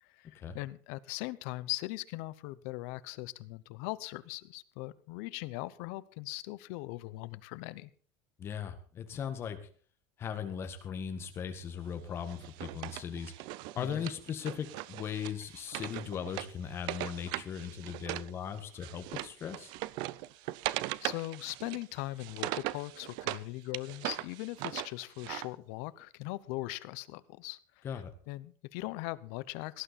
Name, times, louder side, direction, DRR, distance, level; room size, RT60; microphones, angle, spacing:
voice 1, 0.0-7.9 13.8-14.1 21.0-27.9 28.3-29.8, left 19 dB, 65° left, 17 dB, 0.8 m, -40 dB
voice 2, 8.4-9.6 10.2-13.3 13.8-19.7 27.8-28.1, left 7 dB, 25° left, 8 dB, 1.7 m, -38 dB
Wood, 12.3-18.3 18.6-23.4 23.7-25.5, right 17 dB, 55° right, 0.5 m, -39 dB
18.0 x 11.5 x 4.2 m, 0.42 s
cardioid pair, 170°, 9 cm